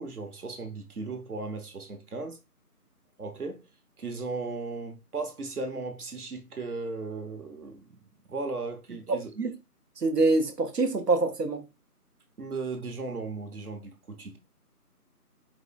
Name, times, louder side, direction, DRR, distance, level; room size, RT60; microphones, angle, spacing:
voice 1, 0.0-2.4 3.2-3.6 4.0-8.0 8.3-9.3 12.4-14.4, right 3 dB, 70° right, 1.2 m, -36 dB
voice 2, 9.1-9.6 10.0-11.7, right 3 dB, 90° right, 1.1 m, -25 dB
4.9 x 3.9 x 2.3 m
figure-of-eight pair, 170°, 47 cm